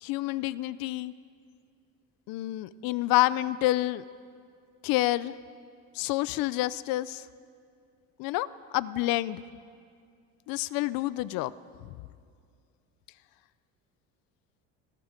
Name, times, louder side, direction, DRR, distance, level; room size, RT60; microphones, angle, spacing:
voice 1, 0.0-1.1 2.3-4.0 4.8-5.3 5.9-7.3 8.2-8.5 8.7-9.4 10.5-11.5, left 16 dB, 75° left, 17 dB, 0.6 m, -28 dB
30.0 x 20.0 x 5.2 m, 2.3 s
cardioid pair, 140°, 35 cm